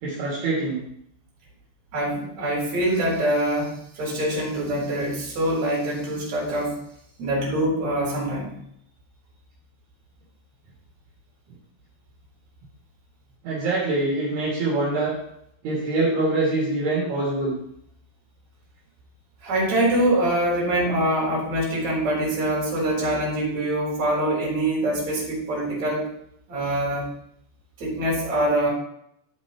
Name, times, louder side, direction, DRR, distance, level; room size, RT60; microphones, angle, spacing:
voice 1, 0.0-0.8 13.4-15.2 15.6-17.6, right 2 dB, 60° right, -6 dB, 4.5 m, -24 dB
voice 2, 1.9-6.8 7.2-8.5 19.4-26.1 26.5-27.1 27.8-28.7, right 1 dB, 40° right, -3 dB, 5.0 m, -24 dB
13.0 x 8.8 x 3.2 m, 0.72 s
omnidirectional pair, 5.3 m